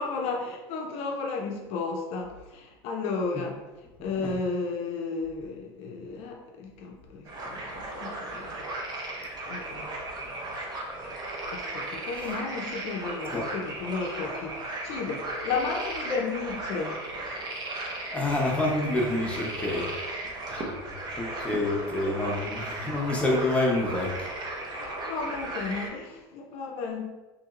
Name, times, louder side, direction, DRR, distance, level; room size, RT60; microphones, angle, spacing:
voice 1, 0.0-3.6 4.0-8.7 9.5-9.9 11.5-17.0 19.6-20.1 21.2-22.3 24.1-24.4 24.7-27.1, left 4 dB, 55° left, 1 dB, 0.4 m, -34 dB
sound 1, 7.3-25.9, right 2 dB, 35° right, 0.7 m, -36 dB
voice 2, 18.1-19.9 20.5-20.6 21.2-24.3, left 2 dB, 10° left, -2 dB, 0.7 m, -27 dB
2.8 x 2.7 x 2.4 m, 1.1 s
hypercardioid pair, 95°, 13 cm